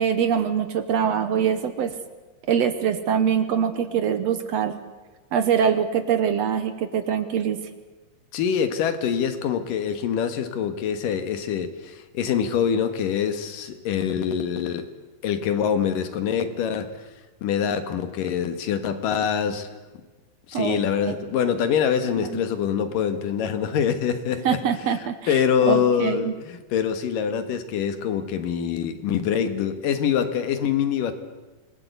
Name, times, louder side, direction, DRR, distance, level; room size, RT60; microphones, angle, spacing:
voice 1, 0.0-1.9 2.5-4.8 5.3-7.6 20.5-21.2 22.2-22.4 24.5-25.4 25.7-26.3, right 8 dB, 65° right, 10 dB, 2.0 m, -23 dB
voice 2, 8.3-14.9 15.2-16.9 17.4-19.7 20.5-24.6 25.3-31.1, left 8 dB, 85° left, 9 dB, 3.2 m, -24 dB
26.0 x 19.5 x 8.2 m, 1.2 s
omnidirectional pair, 3.8 m